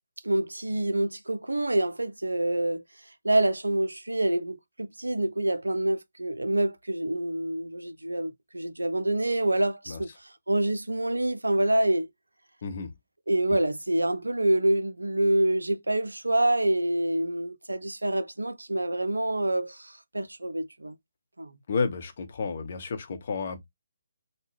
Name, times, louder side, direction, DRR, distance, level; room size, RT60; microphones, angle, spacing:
voice 1, 0.2-2.8 3.2-12.1 13.3-21.0 21.4-21.6, right 1 dB, 75° right, 0.4 m, -27 dB
voice 2, 12.6-12.9 21.7-23.6, left 4 dB, 45° left, 0.7 m, -31 dB
3.5 x 2.1 x 3.1 m
figure-of-eight pair, 140°, 0 cm